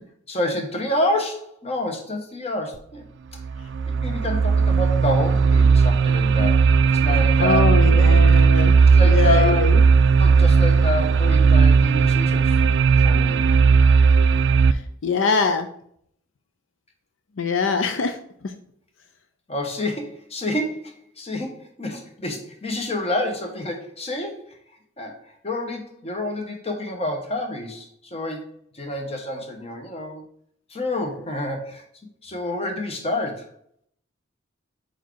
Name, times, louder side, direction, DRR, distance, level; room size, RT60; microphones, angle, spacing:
voice 1, 0.3-3.0 3.3-3.4 3.9-8.1 8.9-9.7 10.2-12.6 13.0-13.4 19.5-24.6 25.0-30.2 30.7-31.8 32.2-33.5, left 1 dB, 30° left, 3 dB, 1.0 m, -28 dB
sound 1, 2.7-2.8 3.4-14.7, right 5 dB, 60° right, 0.3 m, -16 dB
voice 2, 7.4-8.7 9.1-9.8 15.0-15.7 17.4-18.1, left 4 dB, 70° left, 7 dB, 0.5 m, -22 dB
4.7 x 4.6 x 4.5 m, 0.67 s
head